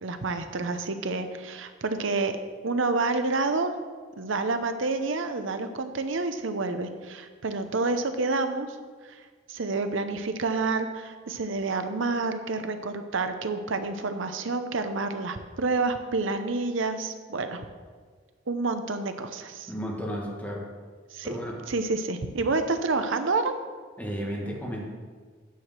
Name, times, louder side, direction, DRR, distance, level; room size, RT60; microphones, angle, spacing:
voice 1, 0.0-2.3 2.6-3.7 4.2-8.8 9.0-9.2 9.5-17.6 18.5-19.7 21.1-21.4 21.7-23.5, right 3 dB, 65° right, 8 dB, 0.7 m, -28 dB
voice 2, 19.7-20.6 21.2-21.6 24.0-24.8, equal, 10° left, -3 dB, 1.7 m, -33 dB
9.3 x 4.9 x 7.5 m, 1.5 s
head